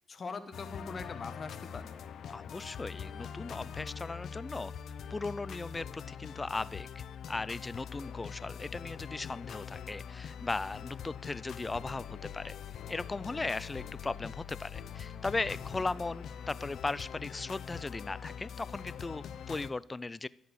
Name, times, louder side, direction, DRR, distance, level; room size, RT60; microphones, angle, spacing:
voice 1, 0.1-2.0 13.3-13.5 15.8-15.9, left 4 dB, 40° left, 10 dB, 1.1 m, -42 dB
sound 1, 0.5-19.7, left 8 dB, 65° left, 0.6 m, -43 dB
voice 2, 2.3-4.7 5.1-12.6 12.9-20.3, left 3 dB, 20° left, 20 dB, 0.3 m, -37 dB
11.5 x 4.7 x 8.5 m, 0.78 s
cardioid pair, 90°, 0 cm